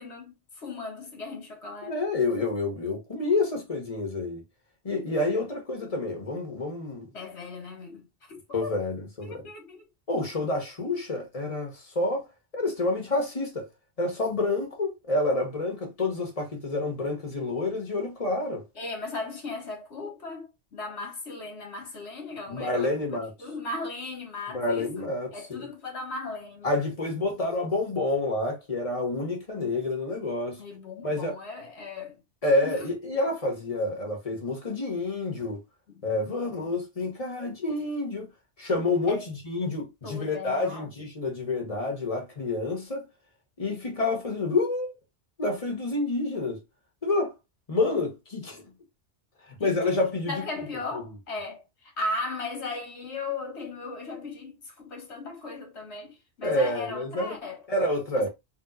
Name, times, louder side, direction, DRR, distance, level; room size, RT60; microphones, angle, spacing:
voice 1, 0.0-2.0 7.1-8.8 9.2-9.8 18.8-25.1 25.3-26.8 30.6-32.2 32.6-32.9 35.9-36.5 39.1-39.3 40.0-41.0 49.6-50.0 50.3-58.3, left 3 dB, 70° left, 1.9 m, -37 dB
voice 2, 1.8-4.4 4.8-7.1 8.5-9.4 10.1-12.3 12.5-13.7 14.0-18.6 22.5-23.3 24.5-25.7 26.6-30.6 31.0-31.3 32.4-35.6 36.0-38.3 38.6-43.1 43.6-44.9 45.4-46.6 47.0-47.3 47.7-48.7 49.6-50.4 56.4-57.4 57.7-58.3, left 2 dB, 30° left, 1.5 m, -28 dB
3.5 x 3.1 x 3.9 m
omnidirectional pair, 1.2 m